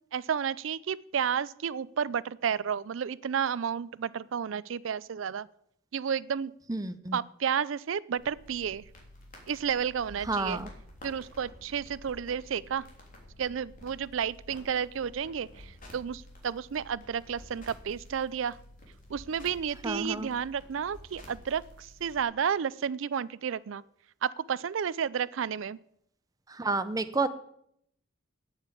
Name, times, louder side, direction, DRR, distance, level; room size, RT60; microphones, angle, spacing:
voice 1, 0.1-5.5 5.9-6.5 7.1-8.8 9.5-10.6 11.0-12.9 13.4-18.6 19.1-23.8 24.2-25.8, right 7 dB, 70° right, 20 dB, 0.4 m, -31 dB
voice 2, 6.7-7.2 10.3-10.7 19.8-20.3 26.5-27.3, right 3 dB, 20° right, 11 dB, 0.7 m, -30 dB
sound 1, 8.2-22.2, left 1 dB, 45° left, 3.4 m, -51 dB
9.0 x 9.0 x 8.3 m, 0.72 s
head